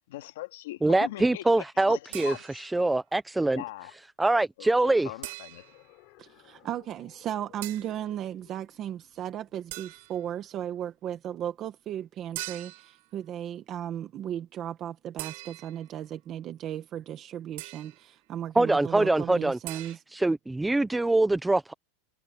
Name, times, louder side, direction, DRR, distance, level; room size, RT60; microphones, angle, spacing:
voice 1, 0.1-2.6 3.5-3.9 4.3-5.7, left 16 dB, 65° left, 2.1 m, -41 dB
voice 2, 0.8-3.6 4.2-5.1 18.6-21.7, right 2 dB, 5° right, 0.4 m, -24 dB
sound 1, 2.1-2.8 5.2-5.9 7.6-8.0 9.7-10.3 12.4-13.0 15.2-15.9 17.6-18.1 19.7-20.0, right 23 dB, 50° right, 4.4 m, -41 dB
sound 2, 5.5-10.8, left 28 dB, 40° left, 7.2 m, -60 dB
voice 3, 6.2-20.0, right 10 dB, 25° right, 1.2 m, -36 dB
supercardioid pair, 180°, 0 cm